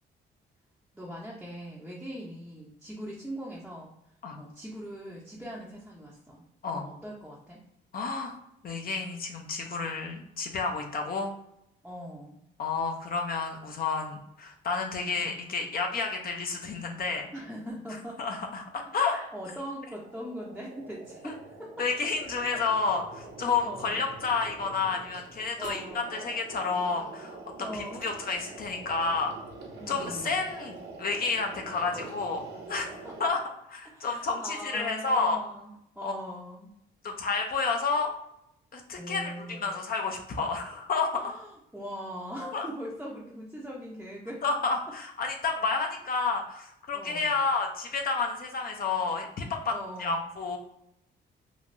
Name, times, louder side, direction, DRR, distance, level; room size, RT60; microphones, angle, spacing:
voice 1, 0.9-3.9 4.4-6.4 6.7-7.6 11.8-12.4 15.2-15.3 17.3-18.2 19.0-21.7 22.4-22.6 23.6-24.0 25.6-26.3 27.6-28.0 29.8-30.5 31.8-32.2 33.0-33.4 33.8-36.7 38.9-39.8 41.1-44.4 46.9-47.4 49.7-50.3, equal, 5° right, -5 dB, 0.6 m, -41 dB
voice 2, 7.9-8.4 8.6-11.3 12.6-17.3 18.2-19.2 21.8-29.3 29.9-32.4 32.7-32.9 33.2-33.4 33.7-35.4 36.0-36.1 37.0-38.1 38.7-41.4 42.5-42.7 44.4-49.7 50.0-50.6, left 4 dB, 50° left, 3 dB, 0.5 m, -30 dB
sound 1, 19.7-33.3, right 3 dB, 55° right, 0.7 m, -45 dB
3.1 x 2.2 x 2.6 m, 0.79 s
cardioid pair, 90°, 20 cm